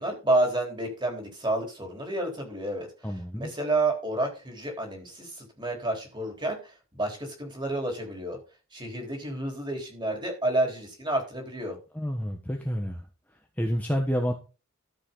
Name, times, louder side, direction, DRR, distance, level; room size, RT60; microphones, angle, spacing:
voice 1, 0.0-2.9 3.3-8.4 8.7-11.8, right 2 dB, 20° right, 3 dB, 3.8 m, -30 dB
voice 2, 3.0-3.5 11.9-13.1 13.6-14.3, equal, 5° left, 2 dB, 1.2 m, -29 dB
13.5 x 7.4 x 3.8 m, 0.32 s
head